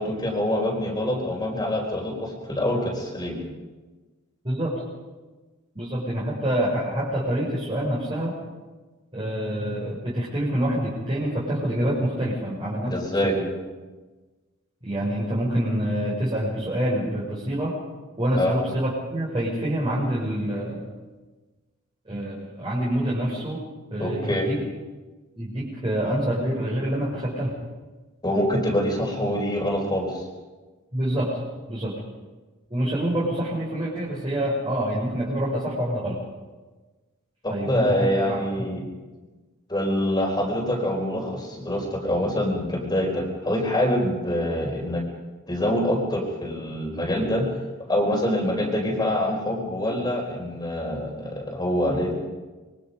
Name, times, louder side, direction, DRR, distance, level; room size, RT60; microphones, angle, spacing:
voice 1, 0.0-3.4 12.9-13.4 18.3-18.5 24.0-24.5 28.2-30.2 37.4-38.8 39.7-45.0 45.5-47.4 47.9-52.1, left 1 dB, 20° left, 0 dB, 4.5 m, -25 dB
voice 2, 5.7-8.3 9.1-12.9 13.2-13.6 14.8-17.7 18.2-20.9 22.1-23.6 23.9-24.6 25.4-27.5 30.9-31.4 31.7-31.9 32.7-36.2 37.5-38.4, right 1 dB, 25° right, -6 dB, 6.1 m, -26 dB
26.0 x 23.5 x 5.3 m, 1.3 s
head